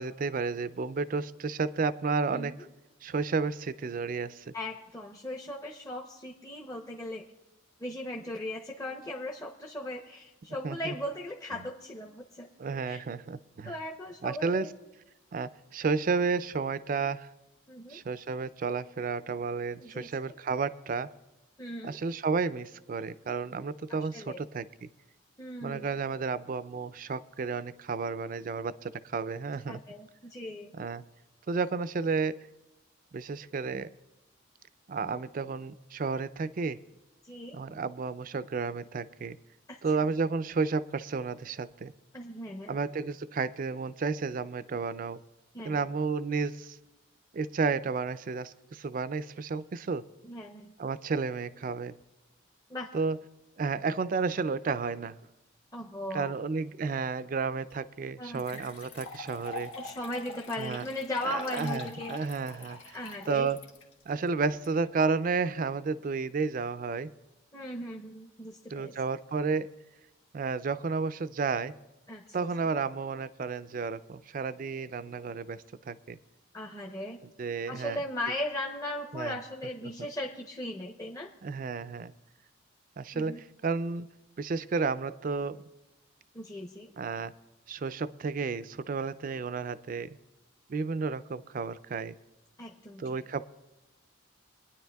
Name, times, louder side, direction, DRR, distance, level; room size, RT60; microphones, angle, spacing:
voice 1, 0.0-2.5 3.0-4.5 10.6-10.9 12.6-13.7 14.2-14.7 15.3-17.3 17.9-21.1 21.8-24.9 25.6-29.8 30.8-31.0 31.5-32.5 33.1-33.9 34.9-36.8 37.5-39.4 39.8-41.9 42.7-45.2 45.6-46.8 47.3-50.0 50.8-51.9 52.9-53.2 53.6-55.2 56.1-59.7 60.6-60.9 61.2-63.0 63.3-63.6 64.1-67.1 68.7-69.7 70.3-71.7 72.3-76.2 77.4-78.0 79.1-79.4 80.0-80.1 81.4-82.1 83.0-84.1 84.4-85.6 87.0-87.3 87.7-90.2 90.7-92.2 93.0-93.4, right 4 dB, 45° right, 15 dB, 0.4 m, -32 dB
voice 2, 2.3-2.7 4.5-7.2 7.8-12.5 12.9-13.0 13.6-14.7 17.7-18.0 19.8-20.1 21.6-22.0 24.1-24.4 25.4-25.9 29.7-30.7 37.2-37.6 39.7-39.8 42.1-42.7 45.5-45.8 50.2-50.8 52.7-52.9 55.7-56.3 58.2-58.6 59.7-62.2 62.9-63.5 67.5-68.9 72.1-72.2 76.5-77.2 77.7-81.3 83.1-83.4 86.3-86.9 92.6-93.0, left 1 dB, 15° left, -1 dB, 0.7 m, -38 dB
sound 1, 57.7-57.8 58.3-64.6, left 3 dB, 85° left, 1.5 m, -44 dB
25.5 x 9.9 x 2.3 m, 1.0 s
head